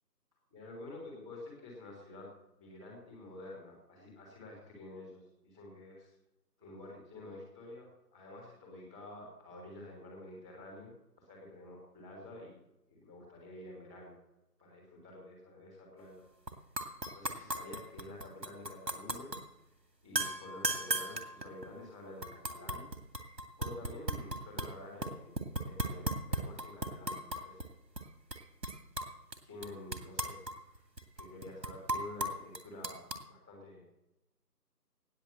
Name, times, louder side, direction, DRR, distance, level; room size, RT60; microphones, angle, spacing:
voice 1, 0.5-2.3 2.6-6.1 6.6-12.6 12.9-14.1 14.6-16.2 16.8-19.3 20.0-22.9 23.6-27.7 29.4-30.8 31.1-33.8, left 2 dB, 5° right, -10 dB, 1.4 m, -49 dB
sound 1, 16.5-16.6 16.8-19.4 20.2-21.8 22.2-24.7 25.0-27.7 28.0-28.1 28.3-29.4 29.6-33.2, right 1 dB, 85° right, 2.5 m, -37 dB
18.5 x 6.9 x 7.7 m, 0.93 s
figure-of-eight pair, 160°, 49 cm